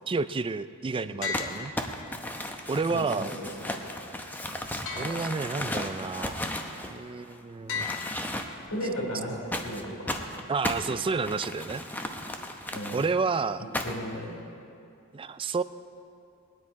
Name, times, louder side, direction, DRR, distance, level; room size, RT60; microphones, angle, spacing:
voice 1, 0.1-1.7 2.7-3.3 4.9-6.4 6.9-8.0 10.5-11.8 12.9-13.6 15.1-15.6, right 4 dB, 25° right, 14 dB, 0.4 m, -30 dB
sound 1, 1.2-2.5 4.9-5.9 7.7-8.9, left 5 dB, 65° left, 1.6 m, -37 dB
Crumpling crinkling, 1.3-7.4 7.7-8.7 9.5-13.0 13.7-14.2, left 1 dB, 10° left, 0.8 m, -35 dB
voice 2, 2.9-3.5 8.7-10.1 12.7-13.0 13.8-14.5, equal, 90° left, -2 dB, 4.2 m, -35 dB
20.0 x 10.0 x 4.7 m, 2.5 s
head